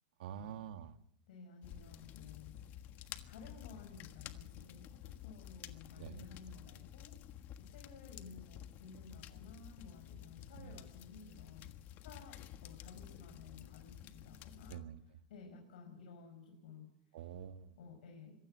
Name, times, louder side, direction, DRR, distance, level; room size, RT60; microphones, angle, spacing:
voice 1, 0.2-1.0 6.0-6.3 10.5-10.8 14.7-15.0 17.1-17.7, right 9 dB, 80° right, 10 dB, 1.8 m, -47 dB
voice 2, 1.3-2.6 3.0-7.1 7.6-11.6 12.0-14.8 15.3-16.9 17.8-18.3, left 4 dB, 85° left, 1 dB, 6.4 m, -55 dB
sound 1, 1.6-14.8, left 12 dB, 40° left, 1.5 m, -52 dB
25.0 x 16.0 x 8.2 m, 0.75 s
supercardioid pair, 145°, 5 cm